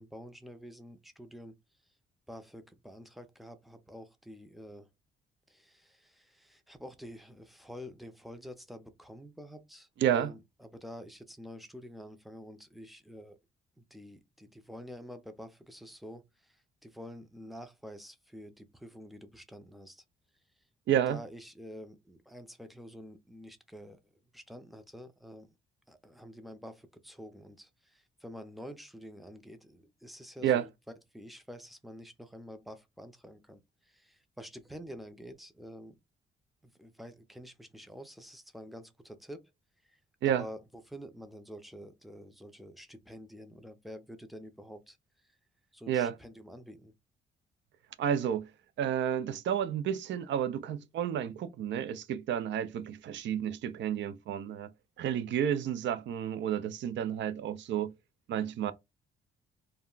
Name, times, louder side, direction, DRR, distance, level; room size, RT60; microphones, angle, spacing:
voice 1, 0.0-1.6 2.3-4.9 5.5-13.4 13.8-20.0 20.9-25.5 25.9-30.7 31.1-36.0 36.6-39.5 39.8-40.0 40.3-45.0 45.2-45.3 45.7-46.9, equal, ahead, 0.5 m, -48 dB
voice 2, 10.0-10.3 20.9-21.2 30.4-30.6 40.2-40.4 45.9-46.1 48.0-48.5 48.8-54.7 55.0-57.9 58.3-58.7, right 9 dB, 65° right, 0.5 m, -31 dB
2.3 x 2.1 x 3.7 m
cardioid pair, 90°, 20 cm